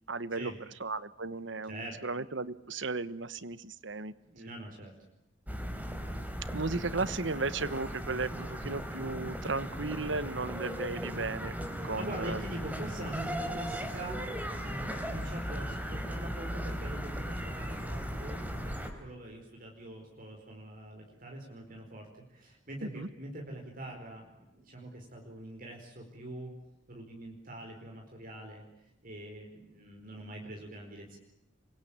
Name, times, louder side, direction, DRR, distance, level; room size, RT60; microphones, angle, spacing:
voice 1, 0.1-4.1 6.5-11.6 11.8-12.4 22.8-23.1, right 3 dB, 70° right, 15 dB, 1.2 m, -35 dB
voice 2, 1.6-2.0 4.1-4.9 12.0-14.2 14.6-26.5 26.9-31.2, right 1 dB, 45° right, 1 dB, 4.8 m, -44 dB
sound 1, 5.5-18.9, equal, 10° right, 4.3 m, -37 dB
27.0 x 24.0 x 8.9 m, 0.87 s
head